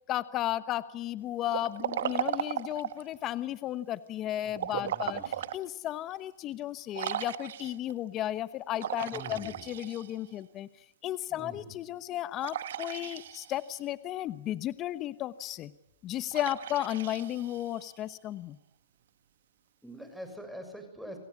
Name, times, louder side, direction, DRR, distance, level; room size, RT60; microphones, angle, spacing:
voice 1, 0.1-5.2 5.5-10.7 11.0-15.7 16.0-18.6, left 13 dB, 35° left, 15 dB, 1.0 m, -34 dB
Liquid, 1.5-3.1 4.5-5.6 6.1-6.2 6.9-7.9 8.8-10.4 12.4-13.8 16.3-18.0, right 11 dB, 70° right, 1.3 m, -36 dB
voice 2, 4.4-5.4 9.1-9.6 11.3-11.7 19.8-21.2, equal, ahead, 6 dB, 6.6 m, -45 dB
28.5 x 17.5 x 9.7 m, 0.82 s
hypercardioid pair, 130°, 0 cm